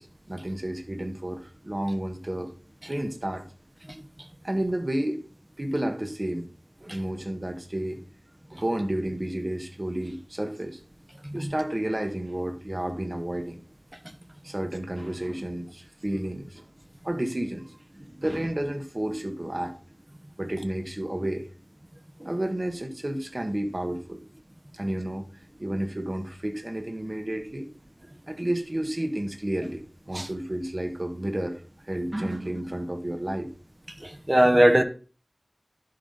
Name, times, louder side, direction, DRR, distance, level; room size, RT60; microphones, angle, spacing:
voice 1, 0.0-2.5 2.8-3.4 4.4-5.2 5.6-6.5 6.8-8.0 8.5-10.8 11.3-13.6 14.4-16.7 17.0-19.7 20.4-21.5 22.2-24.2 24.7-25.2 25.6-27.7 28.3-33.5, right 1 dB, 45° right, 1.5 m, -31 dB
voice 2, 34.0-34.8, right 1 dB, 30° right, 1.0 m, -19 dB
11.5 x 5.2 x 4.0 m
wide cardioid pair, 40°, 0 cm